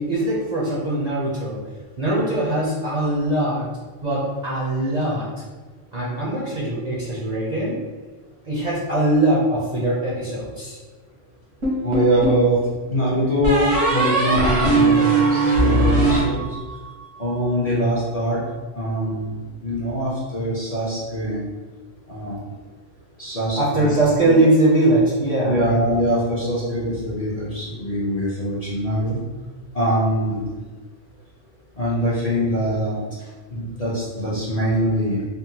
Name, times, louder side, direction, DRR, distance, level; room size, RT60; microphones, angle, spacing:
voice 1, 0.0-1.6 2.0-3.7 4.0-5.3 5.9-7.8 8.4-10.8 23.6-25.6, right 1 dB, 45° right, -7 dB, 0.6 m, -21 dB
sound 1, 11.6-12.5 13.4-16.9, right 2 dB, 75° right, 1.4 m, -19 dB
voice 2, 11.8-12.6 12.9-16.4 17.2-18.4 18.7-21.4 22.1-22.4 23.2-24.4 25.5-29.2 29.7-30.4 31.8-33.0 33.5-35.2, equal, 40° left, -7 dB, 0.6 m, -23 dB
3.6 x 2.1 x 2.8 m, 1.3 s
omnidirectional pair, 1.3 m